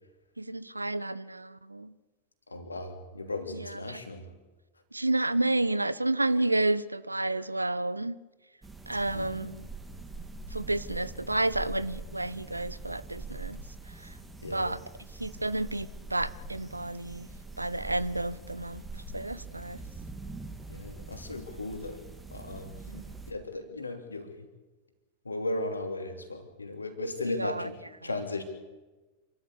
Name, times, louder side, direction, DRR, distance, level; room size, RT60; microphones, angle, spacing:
voice 1, 0.4-1.9 3.5-4.0 4.9-8.2 8.9-9.7 10.5-13.6 14.5-14.8 15.2-17.3 17.6-18.8 19.1-19.8 22.9-23.1 27.4-27.7, right 2 dB, 85° right, 0.7 m, -30 dB
voice 2, 2.5-4.3 8.9-9.4 14.4-14.7 20.7-22.0 22.3-22.8 23.3-24.3 25.2-28.4, left 2 dB, 80° left, 3.0 m, -36 dB
sound 1, 8.6-23.3, right 3 dB, 10° right, 2.8 m, -43 dB
27.5 x 13.5 x 8.4 m
figure-of-eight pair, 90°, 0 cm